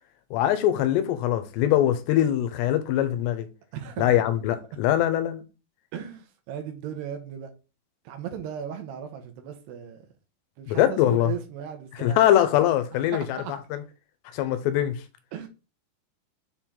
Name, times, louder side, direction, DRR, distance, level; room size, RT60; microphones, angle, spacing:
voice 1, 0.3-3.5 4.0-5.4 10.7-11.3 12.0-13.4 13.7-13.8 14.3-15.0, left 12 dB, 85° left, 3.0 m, -22 dB
voice 2, 3.7-4.2 5.9-7.5 8.1-10.1 10.6-12.2 13.1-13.5 15.3-15.5, right 9 dB, 75° right, 3.1 m, -36 dB
7.5 x 4.5 x 3.8 m
omnidirectional pair, 4.9 m